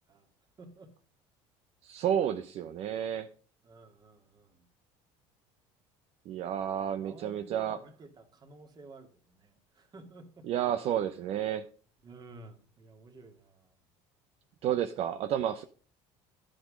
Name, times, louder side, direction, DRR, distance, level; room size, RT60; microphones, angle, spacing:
voice 1, 0.6-0.9 3.6-4.7 6.7-10.5 12.0-13.7, right 3 dB, 35° right, 6 dB, 2.3 m, -52 dB
voice 2, 1.8-3.3 6.3-7.8 10.5-11.7 14.6-15.6, right 10 dB, 55° right, 9 dB, 0.8 m, -31 dB
11.5 x 7.8 x 5.2 m, 0.41 s
cardioid pair, 110°, 12 cm